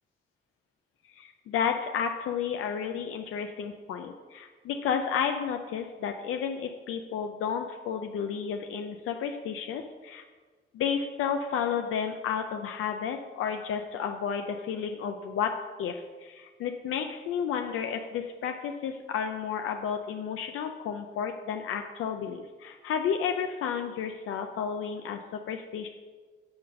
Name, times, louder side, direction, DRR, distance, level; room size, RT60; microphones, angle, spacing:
voice 1, 1.1-10.2 10.7-15.5 15.8-25.9, left 7 dB, 90° left, 5 dB, 0.5 m, -32 dB
7.7 x 4.1 x 6.4 m, 1.4 s
cardioid pair, 80°, 21 cm